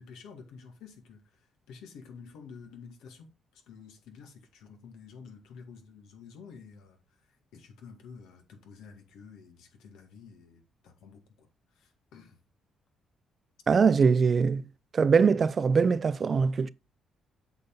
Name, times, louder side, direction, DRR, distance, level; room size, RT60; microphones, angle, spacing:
voice 1, 0.0-12.4, left 5 dB, 85° left, 2.0 m, -50 dB
voice 2, 13.7-14.7 14.9-16.7, right 5 dB, 45° right, 0.4 m, -22 dB
8.1 x 5.3 x 3.8 m
cardioid pair, 90°, 0 cm